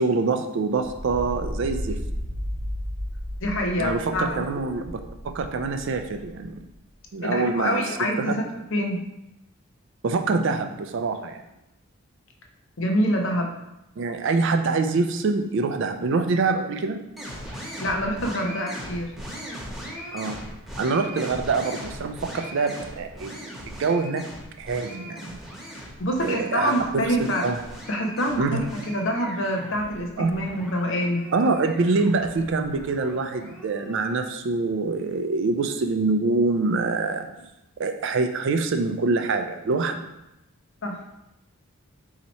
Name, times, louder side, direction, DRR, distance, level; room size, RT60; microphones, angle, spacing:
voice 1, 0.0-2.0 3.8-5.0 5.2-6.6 7.1-7.8 8.2-8.3 10.0-11.4 14.0-17.0 20.1-20.4 20.8-24.3 24.6-25.4 26.2-27.6 28.4-28.7 30.2-30.3 31.3-37.3 37.8-40.0, right 3 dB, 55° right, 7 dB, 0.3 m, -25 dB
sound 1, 0.8-6.8, equal, 40° right, 1.1 m, -34 dB
voice 2, 3.4-4.4 7.2-9.0 12.8-13.6 17.8-19.1 25.7-27.5 27.9-31.3 40.8-41.0, equal, 55° left, 2 dB, 0.7 m, -26 dB
sound 2, 17.2-34.1, equal, ahead, 0.9 m, -39 dB
4.2 x 2.8 x 4.1 m, 0.91 s
head